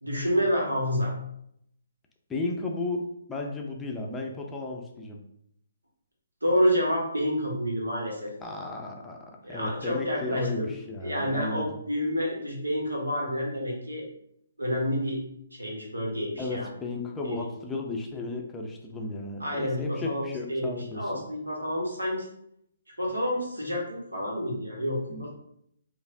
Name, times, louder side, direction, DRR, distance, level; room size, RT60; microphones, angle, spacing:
voice 1, 0.0-1.1 6.4-8.3 9.4-10.7 11.0-14.0 14.6-15.2 15.5-16.7 17.2-17.5 19.4-22.2 23.0-25.3, equal, 85° right, -2 dB, 1.4 m, -29 dB
voice 2, 2.3-5.2 8.4-11.7 16.4-21.1 25.1-25.3, left 3 dB, 10° left, 0 dB, 0.5 m, -34 dB
4.8 x 2.5 x 2.7 m, 0.73 s
figure-of-eight pair, 135°, 0 cm